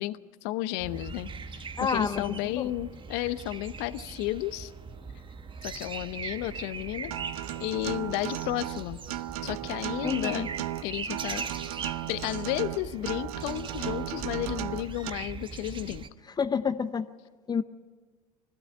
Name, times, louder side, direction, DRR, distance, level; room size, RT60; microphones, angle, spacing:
voice 1, 0.0-4.7 5.6-7.2 7.6-9.0 9.4-10.5 10.8-11.5 12.1-16.1, left 16 dB, 60° left, 15 dB, 0.9 m, -33 dB
sound 1, 0.8-16.1, right 5 dB, 25° right, 1.1 m, -40 dB
voice 2, 1.8-2.7 10.0-10.5 16.2-17.1 17.5-17.6, left 6 dB, 20° left, 12 dB, 0.7 m, -29 dB
Acoustic guitar, 7.1-15.1, right 14 dB, 75° right, 0.8 m, -36 dB
20.5 x 15.5 x 8.5 m, 1.4 s
hypercardioid pair, 85°, 19 cm